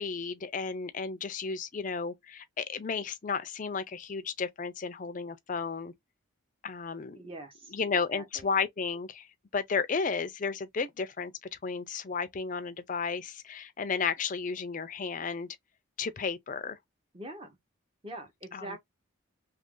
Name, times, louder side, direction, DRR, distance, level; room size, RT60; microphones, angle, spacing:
voice 1, 0.0-5.9 6.6-7.2 7.7-9.3 9.5-11.3 11.6-15.5 16.0-16.8 18.5-18.8, left 5 dB, 35° left, 0.4 m, -33 dB
voice 2, 7.1-8.5 17.1-17.6 18.0-18.8, right 1 dB, 25° right, 0.8 m, -44 dB
2.9 x 2.4 x 3.7 m
head